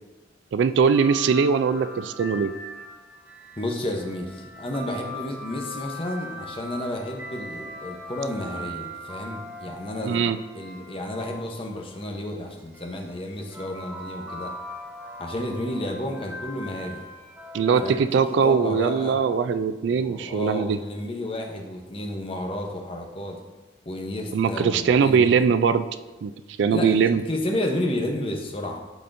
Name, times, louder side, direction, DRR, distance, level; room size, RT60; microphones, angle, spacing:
voice 1, 0.5-2.5 10.0-10.4 17.5-20.8 24.3-25.9 26.2-26.3 26.6-27.2, right 6 dB, 65° right, 12 dB, 0.3 m, -21 dB
sound 1, 0.9-11.8 12.7-18.0, equal, 10° right, 0.7 m, -40 dB
voice 2, 3.6-14.5 15.2-17.0 17.8-18.0 18.3-19.2 19.8-23.4 23.9-25.4 26.7-27.0 27.3-28.8, left 1 dB, 30° left, 2 dB, 0.8 m, -31 dB
12.0 x 4.2 x 2.6 m, 1.2 s
head